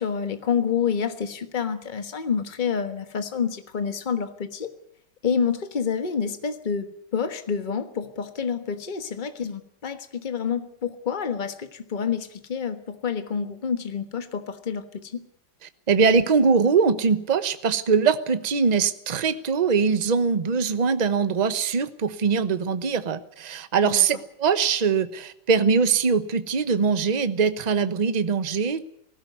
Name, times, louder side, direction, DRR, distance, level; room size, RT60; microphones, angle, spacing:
voice 1, 0.0-4.7 5.2-15.2 23.8-24.1, left 6 dB, 30° left, 9 dB, 1.4 m, -28 dB
voice 2, 15.9-28.9, right 5 dB, 30° right, 12 dB, 0.8 m, -22 dB
18.5 x 16.0 x 9.3 m, 0.70 s
omnidirectional pair, 2.0 m